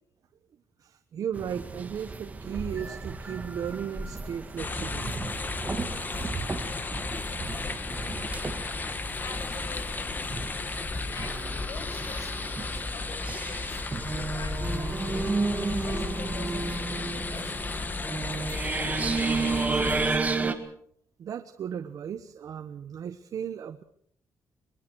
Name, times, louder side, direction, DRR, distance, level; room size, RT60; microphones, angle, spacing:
voice 1, 0.8-5.2 15.9-16.0 21.2-23.8, right 8 dB, 60° right, 9 dB, 1.2 m, -36 dB
sound 1, 1.3-20.5, right 3 dB, 25° right, 2.1 m, -33 dB
sound 2, 4.6-20.2, left 3 dB, 25° left, 1.7 m, -34 dB
voice 2, 9.2-10.2 11.1-13.8 14.1-15.3 15.8-20.3, left 4 dB, 50° left, 7 dB, 5.9 m, -46 dB
22.5 x 22.0 x 6.3 m, 0.65 s
cardioid pair, 130°, 7 cm